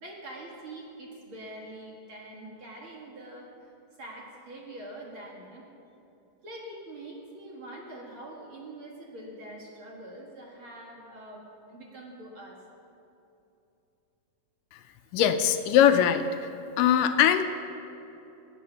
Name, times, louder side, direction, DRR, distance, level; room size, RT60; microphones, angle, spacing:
voice 1, 0.0-3.5 4.0-5.6 6.4-12.6, right 1 dB, 45° right, -2 dB, 2.1 m, -44 dB
voice 2, 15.1-16.5 16.8-17.4, left 9 dB, 85° left, 8 dB, 2.3 m, -21 dB
18.0 x 9.1 x 6.9 m, 2.9 s
omnidirectional pair, 3.9 m